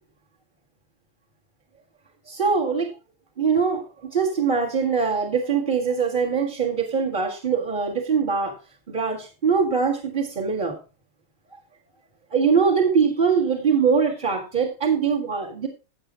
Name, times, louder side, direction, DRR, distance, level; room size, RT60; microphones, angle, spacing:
voice 1, 2.3-2.9 3.4-8.5 8.9-10.8 12.3-15.7, right 5 dB, 25° right, 1 dB, 1.8 m, -22 dB
17.0 x 7.8 x 2.5 m, 0.31 s
omnidirectional pair, 2.4 m